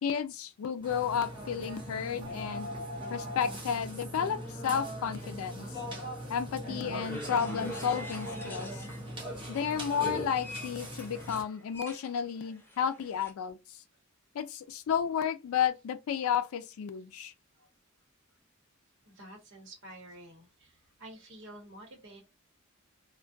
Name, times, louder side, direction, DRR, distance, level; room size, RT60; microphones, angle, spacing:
voice 1, 0.0-2.7 3.1-5.7 6.3-8.7 9.5-13.6 14.3-17.3, left 7 dB, 85° left, 0.3 m, -32 dB
Burping eructation, 0.8-11.4, equal, 25° right, 0.8 m, -40 dB
sound 1, 7.0-9.1 9.5-13.3, left 2 dB, 10° left, 0.5 m, -48 dB
voice 2, 19.1-20.7 21.0-22.2, right 1 dB, 60° right, 0.9 m, -49 dB
2.3 x 2.1 x 2.5 m
head